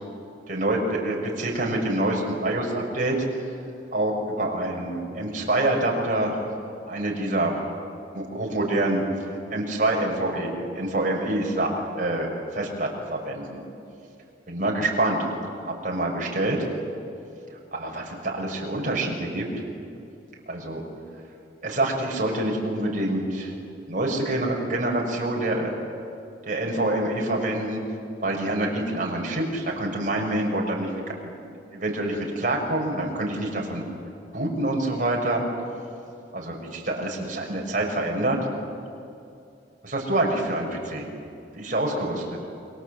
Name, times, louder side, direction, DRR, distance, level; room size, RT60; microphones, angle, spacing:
voice 1, 0.5-3.5 3.9-6.4 6.9-7.6 8.1-13.6 14.5-15.2 15.6-16.7 17.7-19.6 20.5-20.8 21.6-23.5 23.9-25.7 26.4-27.8 28.2-33.8 34.3-35.4 36.3-38.4 39.8-41.1 41.5-42.1, right 1 dB, 50° right, -1 dB, 5.7 m, -26 dB
29.0 x 23.5 x 7.9 m, 2.6 s
head